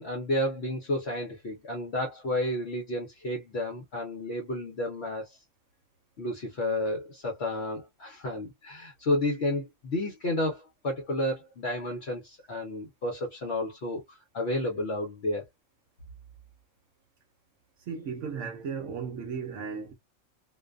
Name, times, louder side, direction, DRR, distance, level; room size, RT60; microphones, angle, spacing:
voice 1, 0.0-5.4 6.2-15.4, left 1 dB, 55° left, 0.9 m, -31 dB
voice 2, 17.9-19.9, right 6 dB, 65° right, 1.0 m, -35 dB
2.5 x 2.2 x 2.3 m
omnidirectional pair, 1.4 m